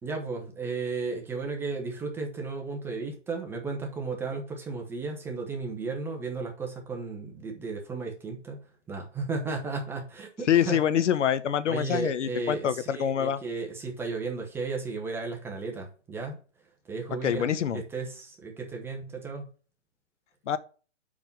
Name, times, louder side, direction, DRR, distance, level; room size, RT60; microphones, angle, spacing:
voice 1, 0.0-8.6 8.9-10.8 11.7-16.4 16.9-19.5, right 4 dB, 5° right, 0.7 m, -34 dB
voice 2, 10.5-13.4 17.2-17.8 20.5-20.6, left 9 dB, 75° left, 0.9 m, -25 dB
5.4 x 4.8 x 5.2 m
hypercardioid pair, 150°, 37 cm